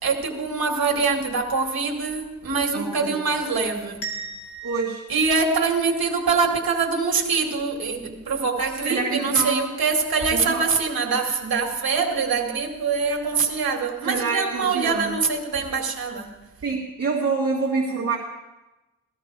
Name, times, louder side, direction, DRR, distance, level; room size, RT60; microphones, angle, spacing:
voice 1, 0.0-4.1 5.1-16.3, right 4 dB, 80° right, 1.9 m, -24 dB
voice 2, 2.7-3.2 4.6-5.0 8.8-9.6 10.3-10.6 14.0-15.2 16.6-18.2, right 4 dB, 45° right, 1.8 m, -26 dB
sound 1, 4.0-6.8, right 4 dB, 75° left, 2.2 m, -38 dB
17.0 x 13.5 x 3.3 m
wide cardioid pair, 150°, 36 cm